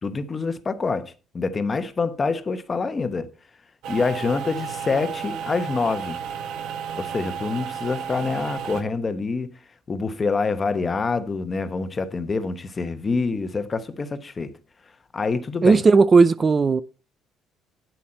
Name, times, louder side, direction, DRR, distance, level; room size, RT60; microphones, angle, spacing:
voice 1, 0.0-3.3 3.9-6.2 7.0-9.5 9.9-14.5 15.1-15.8, left 4 dB, 25° left, 1.0 m, -26 dB
sound 1, 3.8-8.8, right 8 dB, 75° right, 1.4 m, -32 dB
voice 2, 15.6-16.8, right 4 dB, 25° right, 0.4 m, -15 dB
9.3 x 8.4 x 4.3 m
cardioid pair, 130°, 0 cm